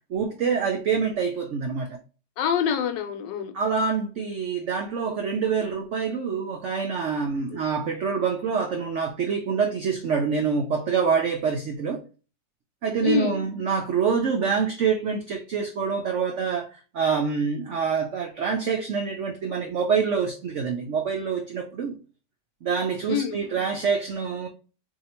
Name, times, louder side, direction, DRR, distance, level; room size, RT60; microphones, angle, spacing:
voice 1, 0.1-2.0 3.5-12.0 12.8-21.9 22.6-24.5, right 6 dB, 80° right, 0.6 m, -26 dB
voice 2, 2.4-3.5 7.5-7.6 13.0-13.4 23.1-23.4, left 8 dB, 75° left, 1.2 m, -26 dB
2.8 x 2.7 x 4.2 m
omnidirectional pair, 1.9 m